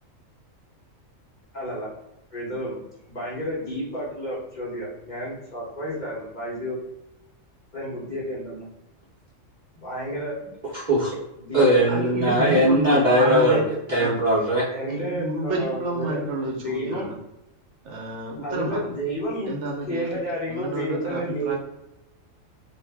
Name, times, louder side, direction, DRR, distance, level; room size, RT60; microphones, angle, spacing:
voice 1, 1.5-1.9 2.3-2.8 3.1-6.8 7.7-8.7 9.7-10.5 11.4-12.2 12.4-12.8 14.7-17.1 18.4-19.5 19.9-21.6, equal, 40° left, -6 dB, 0.9 m, -31 dB
voice 2, 10.7-11.1 11.5-14.6, equal, 45° right, -7 dB, 0.7 m, -20 dB
voice 3, 11.9-13.7 14.0-14.2 14.9-17.2 17.8-18.9 19.5-20.1 20.5-21.6, right 2 dB, 70° right, -1 dB, 0.9 m, -29 dB
2.6 x 2.0 x 3.3 m, 0.90 s
omnidirectional pair, 1.4 m